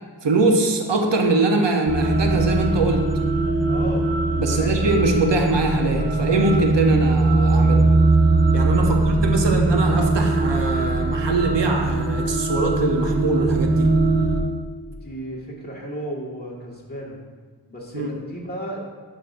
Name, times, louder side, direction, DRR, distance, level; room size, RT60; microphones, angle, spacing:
voice 1, 0.2-3.1 4.4-7.9 8.5-13.9 17.9-18.1, right 3 dB, 80° right, 3 dB, 0.9 m, -22 dB
sound 1, 1.9-14.4, right 2 dB, 35° right, 0.8 m, -20 dB
voice 2, 3.7-4.1 4.5-4.8 8.9-9.2 14.9-17.2 17.7-18.8, equal, 20° left, -5 dB, 1.7 m, -34 dB
11.5 x 5.3 x 2.6 m, 1.5 s
wide cardioid pair, 85°, 42 cm